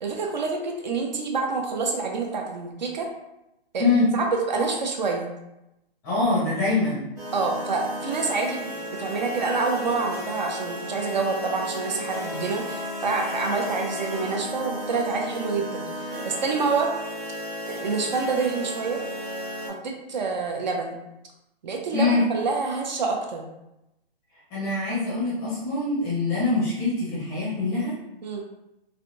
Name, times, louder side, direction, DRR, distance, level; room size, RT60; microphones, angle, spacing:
voice 1, 0.0-3.1 3.7-3.8 4.1-5.3 7.3-16.9 17.7-19.0 19.7-20.9 21.6-23.4 28.2-28.4, right 4 dB, 45° right, 1 dB, 0.5 m, -27 dB
voice 2, 3.8-4.1 6.0-7.0 21.9-22.2 24.5-27.9, left 3 dB, 10° left, -7 dB, 0.6 m, -24 dB
sound 1, 7.2-19.7, equal, 20° right, 0.8 m, -34 dB
3.3 x 2.5 x 2.6 m, 0.90 s
hypercardioid pair, 160°, 31 cm